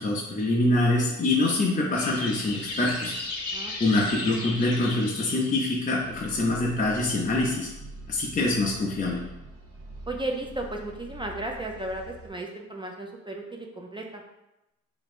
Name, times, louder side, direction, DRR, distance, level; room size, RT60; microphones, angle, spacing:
voice 1, 0.0-3.2 3.8-7.7 8.1-9.2, left 2 dB, 25° left, -4 dB, 0.6 m, -25 dB
sound 1, 1.9-5.7, left 2 dB, 55° left, 1.0 m, -35 dB
sound 2, 6.0-12.3, right 2 dB, 50° right, 0.8 m, -44 dB
voice 2, 10.1-14.2, right 2 dB, 15° right, 1 dB, 0.4 m, -34 dB
3.0 x 2.6 x 4.2 m, 0.94 s
cardioid pair, 90°, 30 cm